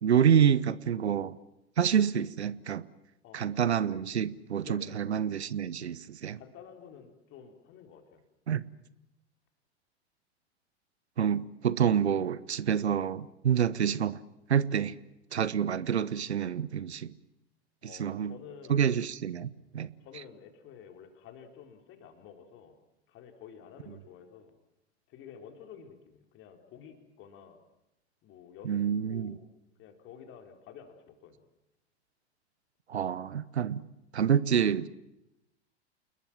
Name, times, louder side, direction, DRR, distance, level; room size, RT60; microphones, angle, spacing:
voice 1, 0.0-1.4 1.8-2.8 3.3-6.4 8.5-8.6 11.2-14.2 14.5-15.0 15.3-17.1 18.0-18.3 18.7-19.9 28.6-29.4 32.9-33.8 34.1-34.9, right 8 dB, 75° right, 1.0 m, -27 dB
voice 2, 3.2-3.6 4.6-5.0 6.4-8.2 15.3-15.5 17.8-18.8 20.0-22.8 23.1-24.5 25.1-27.6 28.2-28.8 29.1-29.4 29.8-31.5, left 7 dB, 35° left, 4.2 m, -50 dB
29.0 x 21.0 x 7.5 m
figure-of-eight pair, 90°, 34 cm